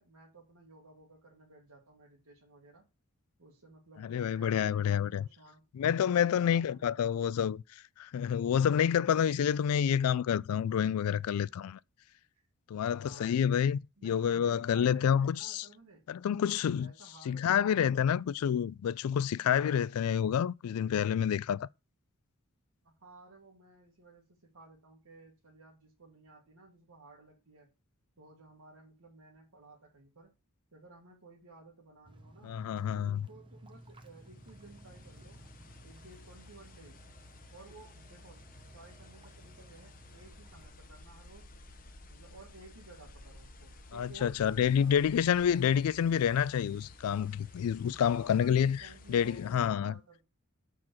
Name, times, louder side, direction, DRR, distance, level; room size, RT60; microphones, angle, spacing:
voice 1, 0.0-2.9 3.4-5.6 6.4-7.0 12.9-13.4 14.0-16.0 16.8-17.4 22.8-27.7 28.2-30.3 30.7-32.5 32.9-35.4 35.8-37.0 37.5-38.5 38.7-41.5 42.1-45.6 47.9-50.2, right 3 dB, 85° right, 1.9 m, -55 dB
voice 2, 4.0-5.2 5.7-7.6 8.0-11.8 12.7-15.6 16.1-16.9 17.3-21.7 32.4-33.3 43.9-48.8 49.1-49.9, left 8 dB, 75° left, 0.3 m, -28 dB
sound 1, 32.0-40.7, right 1 dB, 20° right, 0.8 m, -56 dB
sound 2, 33.6-49.7, left 2 dB, 40° left, 0.8 m, -55 dB
sound 3, 40.2-45.5, equal, 45° right, 1.4 m, -56 dB
6.1 x 4.4 x 6.3 m
head